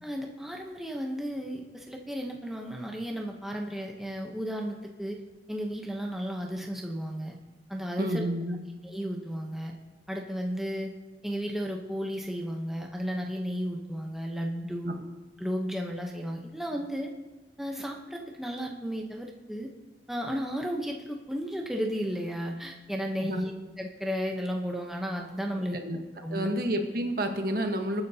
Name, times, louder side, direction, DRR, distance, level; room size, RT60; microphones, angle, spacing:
voice 1, 0.0-5.2 5.5-7.4 7.7-8.2 8.8-9.7 10.1-10.9 11.2-15.0 15.4-17.1 17.6-19.7 20.1-23.5 23.8-25.8 26.2-26.5, equal, ahead, 0 dB, 0.8 m, -34 dB
voice 2, 8.0-8.6 14.8-14.9 23.2-23.4 25.7-26.0 26.3-28.0, right 1 dB, 55° right, 4 dB, 1.2 m, -30 dB
28.0 x 9.4 x 2.8 m, 1.2 s
head